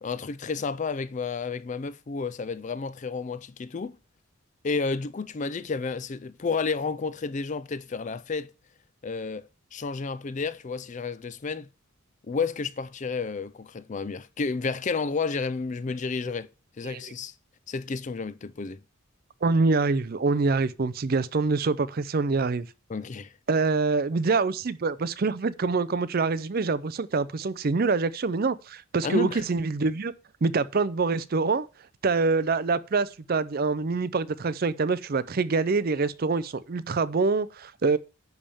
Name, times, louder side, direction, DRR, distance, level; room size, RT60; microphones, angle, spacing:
voice 1, 0.0-4.0 4.6-8.5 9.0-11.7 12.3-16.5 16.8-17.3 17.7-18.8 22.9-23.3 29.0-29.4, left 4 dB, 35° left, 0.4 m, -31 dB
voice 2, 19.4-22.7 23.5-30.1 30.4-31.7 32.0-38.0, right 4 dB, 45° right, 0.5 m, -25 dB
10.5 x 3.5 x 6.9 m
head